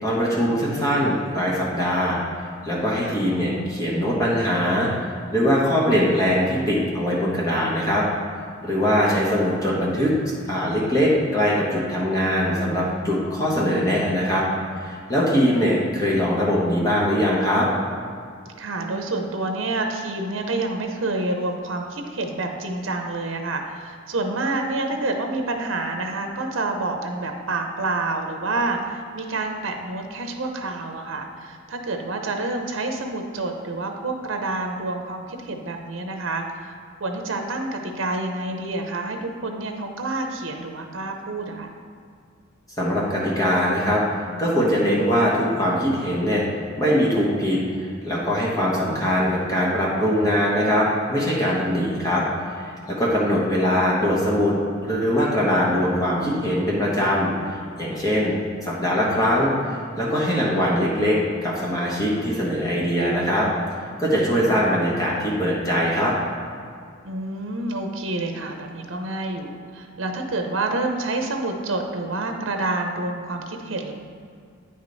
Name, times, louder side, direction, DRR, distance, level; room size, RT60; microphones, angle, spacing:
voice 1, 0.0-2.2 2.6-4.9 5.3-8.0 8.6-10.1 10.5-14.5 14.8-17.7 42.8-44.0 44.4-46.4 46.8-52.2 52.6-54.5 54.8-57.3 57.8-58.3 58.6-59.5 60.0-63.5 64.0-66.1, equal, 20° left, -5 dB, 1.3 m, -22 dB
voice 2, 18.6-41.7 67.0-73.9, right 2 dB, 70° right, 4 dB, 0.8 m, -28 dB
9.0 x 5.1 x 4.0 m, 2.2 s
head